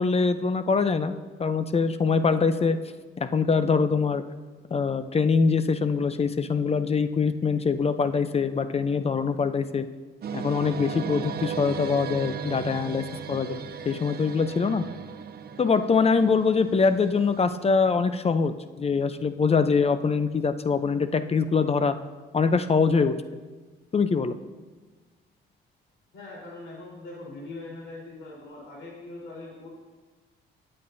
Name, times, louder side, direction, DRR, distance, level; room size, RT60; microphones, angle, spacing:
voice 1, 0.0-2.8 3.2-4.2 4.7-9.8 10.3-14.8 15.6-21.9 22.3-23.1 23.9-24.3, left 5 dB, 30° left, 11 dB, 0.7 m, -24 dB
sound 1, 10.2-17.6, right 7 dB, 50° right, 0.7 m, -36 dB
voice 2, 26.1-29.7, left 2 dB, 75° left, -4 dB, 4.0 m, -41 dB
21.0 x 8.8 x 2.7 m, 1.3 s
cardioid pair, 90°, 20 cm